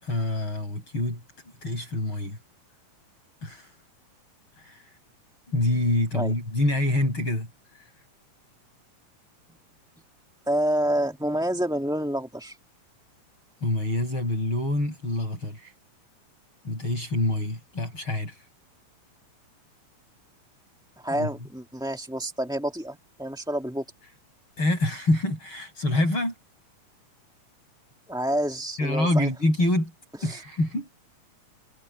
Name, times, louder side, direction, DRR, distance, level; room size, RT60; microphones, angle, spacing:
voice 1, 0.0-1.2 1.6-2.4 3.4-3.7 4.6-4.8 5.5-7.5 7.7-7.8 13.6-15.7 16.6-18.4 21.1-21.3 24.6-26.3 28.8-29.9 30.2-30.9, left 1 dB, 40° left, 8.2 m, -26 dB
voice 2, 10.5-12.6 21.0-23.8 28.1-29.3 30.2-30.4, right 1 dB, ahead, 0.9 m, -28 dB
omnidirectional pair, 3.6 m